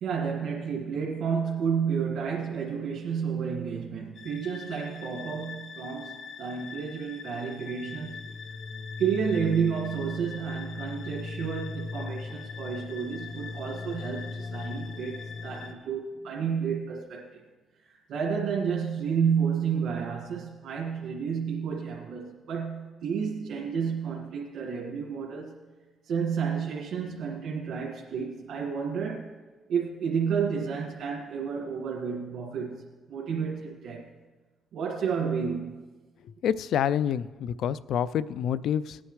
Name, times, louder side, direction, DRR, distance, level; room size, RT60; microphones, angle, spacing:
voice 1, 0.0-8.2 9.0-17.4 17.8-25.6 26.0-29.3 29.7-34.1 34.7-35.9, right 6 dB, 75° right, -3 dB, 1.8 m, -31 dB
sound 1, 4.2-15.7, left 4 dB, 55° left, 0.9 m, -39 dB
voice 2, 36.4-39.0, left 9 dB, 75° left, 18 dB, 0.3 m, -27 dB
18.5 x 9.8 x 3.2 m, 1.3 s
cardioid pair, 90°, 0 cm